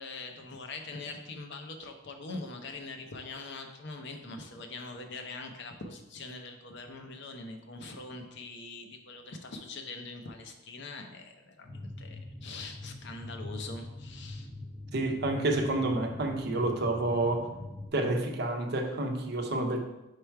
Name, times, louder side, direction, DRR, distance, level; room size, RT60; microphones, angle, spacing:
voice 1, 0.0-14.5, left 3 dB, 65° left, 4 dB, 0.8 m, -43 dB
sound 1, 11.6-17.9, left 2 dB, 30° left, 0.7 m, -43 dB
voice 2, 14.9-17.5 17.9-19.8, right 2 dB, 55° right, 4 dB, 0.7 m, -29 dB
5.0 x 4.5 x 4.6 m, 0.97 s
head